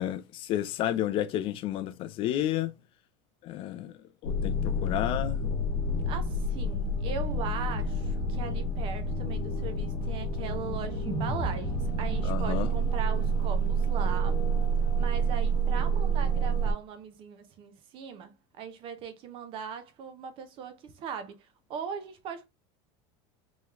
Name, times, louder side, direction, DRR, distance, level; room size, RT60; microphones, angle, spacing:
voice 1, 0.0-2.7 3.4-3.9 4.2-5.4 12.2-12.7, left 12 dB, 40° left, 0.4 m, -31 dB
sound 1, 4.2-16.7, right 2 dB, 60° left, 1.0 m, -28 dB
voice 2, 5.9-14.4 15.0-21.4 21.7-22.5, right 7 dB, 40° right, 0.7 m, -39 dB
sound 2, 11.0-15.4, right 2 dB, 20° right, 1.1 m, -38 dB
3.6 x 3.0 x 2.9 m
supercardioid pair, 150°, 14 cm